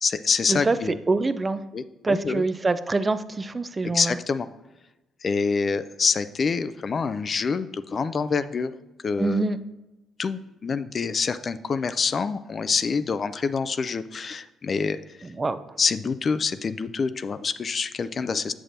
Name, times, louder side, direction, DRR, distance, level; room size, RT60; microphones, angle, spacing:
voice 1, 0.0-1.0 1.7-2.4 3.8-4.5 5.2-8.7 9.0-9.5 10.2-15.0 15.8-18.5, left 5 dB, 45° left, 13 dB, 0.4 m, -26 dB
voice 2, 1.1-1.6 2.0-4.2 9.2-9.6 15.4-15.6, right 3 dB, 30° right, 12 dB, 0.4 m, -24 dB
7.2 x 6.8 x 2.6 m, 1.0 s
hypercardioid pair, 50°, 0 cm